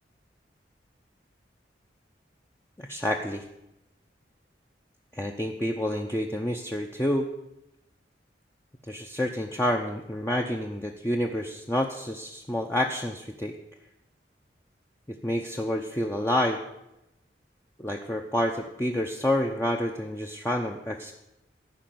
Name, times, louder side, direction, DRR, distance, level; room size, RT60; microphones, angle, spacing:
voice 1, 2.8-3.4 5.1-7.3 8.9-13.5 15.2-16.6 17.8-21.1, left 1 dB, 15° left, 1 dB, 0.7 m, -28 dB
14.5 x 5.8 x 9.3 m, 0.89 s
head